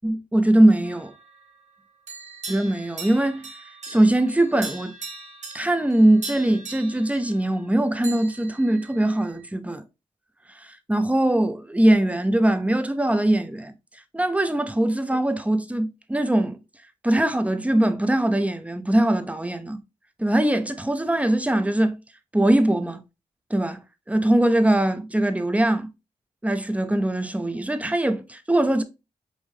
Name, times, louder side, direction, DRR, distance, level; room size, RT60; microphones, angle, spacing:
voice 1, 0.0-1.1 2.5-3.5 3.9-4.9 5.5-9.8 10.5-13.7 14.1-16.6 17.0-19.8 20.2-22.0 22.3-23.0 23.5-23.8 24.1-25.9 26.4-28.8, right 1 dB, 10° right, 0.7 m, -21 dB
sound 1, 0.8-1.7 2.1-9.5, right 3 dB, 60° right, 1.0 m, -40 dB
5.4 x 2.6 x 3.3 m
cardioid pair, 55°, 13 cm